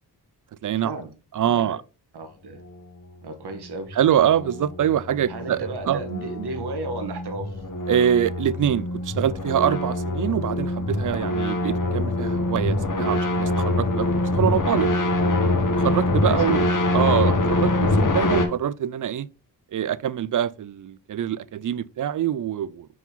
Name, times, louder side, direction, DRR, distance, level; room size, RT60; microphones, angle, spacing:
voice 1, 0.6-1.0 1.3-1.8 3.9-6.0 7.9-14.9 15.8-16.7 16.9-19.3 19.7-22.9, right 10 dB, 50° right, 0.5 m, -24 dB
voice 2, 1.4-1.8 2.1-2.6 3.2-4.0 5.3-7.6 16.3-16.6, right 3 dB, 65° right, 1.4 m, -34 dB
sound 1, 3.9-18.5, left 2 dB, 45° left, 1.7 m, -24 dB
5.4 x 4.7 x 3.8 m
supercardioid pair, 40°, 42 cm